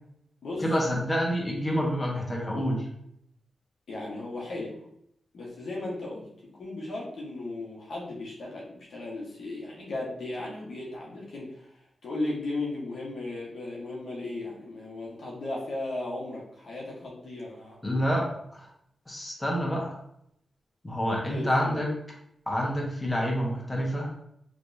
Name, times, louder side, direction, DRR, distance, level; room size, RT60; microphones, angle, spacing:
voice 1, 0.6-2.9 17.8-18.3 18.5-18.7 19.1-20.0 20.8-22.0 22.5-24.1, equal, 20° left, -2 dB, 1.1 m, -28 dB
voice 2, 3.9-4.8 5.3-6.3 6.5-17.8 21.3-21.9, left 2 dB, 70° left, -4 dB, 1.1 m, -36 dB
3.3 x 3.1 x 2.7 m, 0.74 s
cardioid pair, 50°, 0 cm